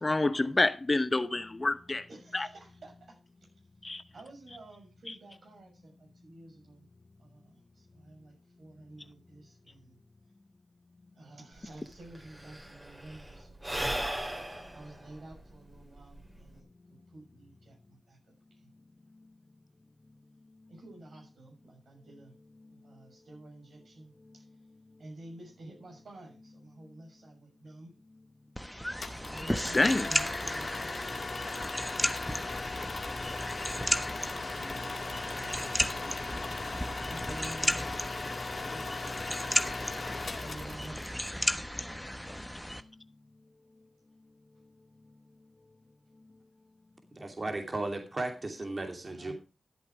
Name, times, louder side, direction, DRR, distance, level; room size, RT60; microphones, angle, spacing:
voice 1, 0.0-2.1 2.3-2.5 3.8-4.0 29.7-30.1, left 2 dB, 35° left, 0.9 m, -27 dB
voice 2, 2.1-3.2 3.5-6.9 7.2-10.0 11.1-14.1 14.5-16.6 16.9-18.2 18.5-18.7 20.7-22.3 22.7-24.5 25.0-27.9 29.0-31.4 33.6-36.3 36.6-42.3 42.7-42.9 49.0-49.3, right 2 dB, 75° right, 6.4 m, -51 dB
Sigh / Breathing, 11.6-11.7 11.9-16.6, right 1 dB, 20° right, 3.5 m, -37 dB
sound 1, 28.6-42.8, equal, 5° left, 1.3 m, -35 dB
sound 2, 29.0-41.3, left 3 dB, 55° left, 2.0 m, -38 dB
voice 3, 47.1-49.3, right 2 dB, 45° right, 2.8 m, -35 dB
13.0 x 8.3 x 4.9 m
cardioid pair, 45°, 0 cm